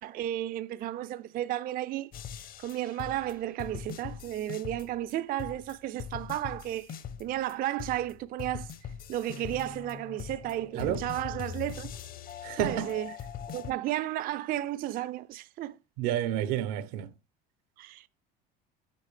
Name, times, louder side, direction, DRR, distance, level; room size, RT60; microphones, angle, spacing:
voice 1, 0.0-2.1 2.6-8.7 9.1-11.9 12.5-13.1 13.5-15.8 17.8-18.1, right 13 dB, 45° right, 0.4 m, -33 dB
sound 1, 2.1-5.1 5.4-7.5 7.8-13.7, left 8 dB, 45° left, 0.8 m, -41 dB
voice 2, 12.4-12.9 16.0-17.1, right 11 dB, 85° right, 0.9 m, -30 dB
8.3 x 6.3 x 3.2 m
cardioid pair, 130°, 21 cm